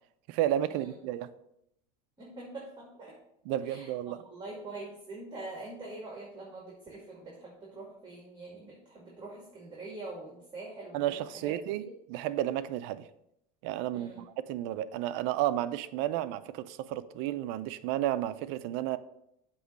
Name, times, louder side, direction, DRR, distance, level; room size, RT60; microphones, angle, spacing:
voice 1, 0.3-1.3 3.5-4.2 10.9-11.8 12.1-13.1 13.6-19.0, right 13 dB, 65° right, 0.5 m, -32 dB
voice 2, 2.2-3.1 3.6-11.6 11.8-11.9 13.9-14.2, right 2 dB, 20° right, 2.1 m, -44 dB
7.9 x 3.1 x 6.2 m
supercardioid pair, 105°, 21 cm